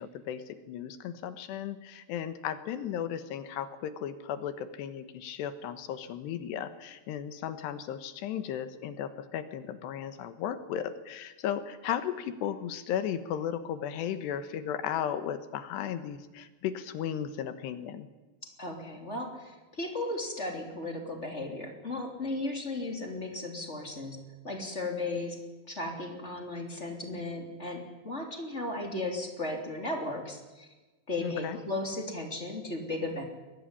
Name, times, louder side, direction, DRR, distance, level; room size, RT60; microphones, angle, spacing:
voice 1, 0.0-18.1 31.2-31.6, left 9 dB, 80° left, 10 dB, 3.3 m, -35 dB
voice 2, 18.6-24.2 24.4-25.4 25.7-30.7 31.1-33.2, left 2 dB, 20° left, 2 dB, 2.9 m, -35 dB
23.0 x 19.5 x 9.9 m, 1.2 s
omnidirectional pair, 5.1 m